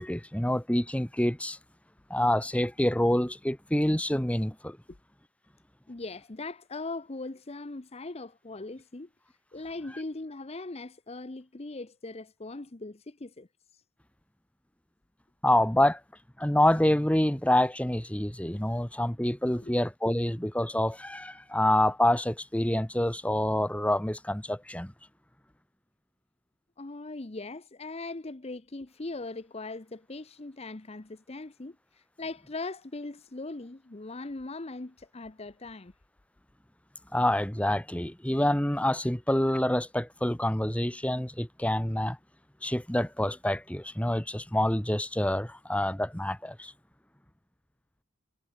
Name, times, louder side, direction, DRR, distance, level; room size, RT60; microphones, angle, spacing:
voice 1, 0.0-1.6 2.1-4.8 15.4-16.0 16.4-24.9 37.1-42.2 42.6-46.7, left 1 dB, 5° left, 1.2 m, -27 dB
voice 2, 5.9-9.1 9.5-13.5 19.6-19.7 26.8-35.9, left 2 dB, 30° left, 0.8 m, -40 dB
head